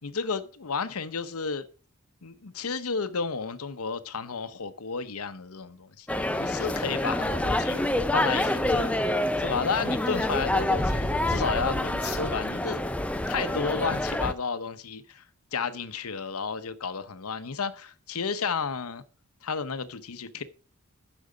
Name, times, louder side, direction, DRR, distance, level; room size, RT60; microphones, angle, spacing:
voice 1, 0.0-1.6 2.2-7.8 8.1-8.9 9.4-12.8 13.3-15.2 15.5-19.0 19.4-20.4, left 5 dB, 85° left, 0.8 m, -32 dB
sound 1, 6.1-14.3, left 1 dB, 5° left, 0.5 m, -27 dB
10.5 x 6.3 x 5.0 m
head